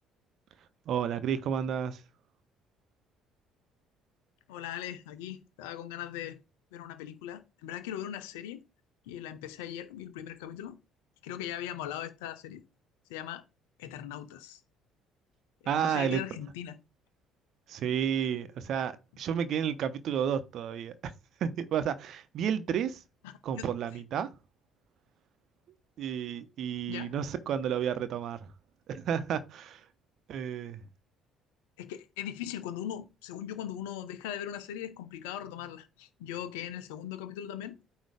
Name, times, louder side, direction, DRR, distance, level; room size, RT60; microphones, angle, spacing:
voice 1, 0.9-2.0 15.7-16.2 17.7-21.1 21.4-23.0 23.4-24.3 26.0-28.4 28.9-29.8 30.3-30.8, right 8 dB, 60° right, 0.9 m, -31 dB
voice 2, 4.5-6.4 6.7-8.6 9.1-10.8 11.2-12.6 13.1-13.4 13.8-14.6 15.6-16.8 23.2-23.7 26.9-27.1 31.8-37.8, left 10 dB, 75° left, 0.9 m, -39 dB
9.0 x 3.0 x 5.0 m
hypercardioid pair, 55°, 0 cm